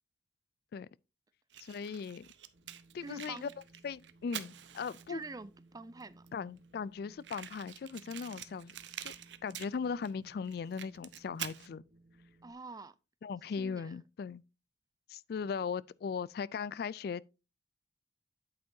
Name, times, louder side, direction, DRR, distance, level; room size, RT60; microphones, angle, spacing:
Fire, 1.5-5.3 6.0-6.1 6.3-6.4 6.6-6.7 7.2-10.1 10.5-11.7, right 10 dB, 85° right, 0.8 m, -46 dB
voice 1, 1.6-2.3 2.9-3.5 3.8-5.2 6.3-8.7 9.0-9.1 9.4-11.8 13.2-14.4 15.1-17.3, left 6 dB, 60° left, 0.3 m, -38 dB
Wind, 2.5-12.5, right 2 dB, 50° right, 1.1 m, -61 dB
voice 2, 3.0-3.5 5.1-6.3 12.4-12.9 13.6-14.0, right 3 dB, 20° right, 0.4 m, -46 dB
8.7 x 8.3 x 2.7 m
head